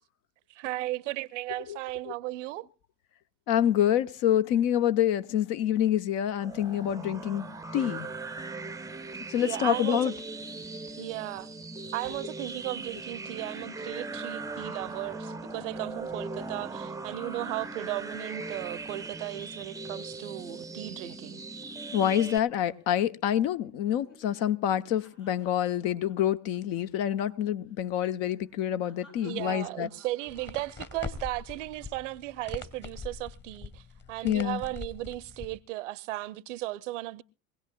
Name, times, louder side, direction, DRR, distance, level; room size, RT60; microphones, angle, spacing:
voice 1, 0.5-2.7 9.4-10.1 11.0-11.5 11.9-21.4 29.2-37.2, right 17 dB, 70° right, 0.7 m, -36 dB
voice 2, 3.5-7.5 7.7-8.1 9.3-10.1 21.9-29.9 34.2-34.6, left 10 dB, 55° left, 0.9 m, -27 dB
sound 1, 6.4-22.4, right 3 dB, 10° right, 0.6 m, -39 dB
sound 2, 15.4-18.0 18.3-18.5 18.8-22.2 22.5-23.0 23.3-27.3 27.6-27.8 28.2-32.3 32.8-33.2, left 1 dB, 90° left, 7.3 m, -59 dB
sound 3, 30.3-35.6, left 5 dB, 30° left, 1.6 m, -43 dB
23.0 x 17.0 x 2.3 m
figure-of-eight pair, 65°, 38 cm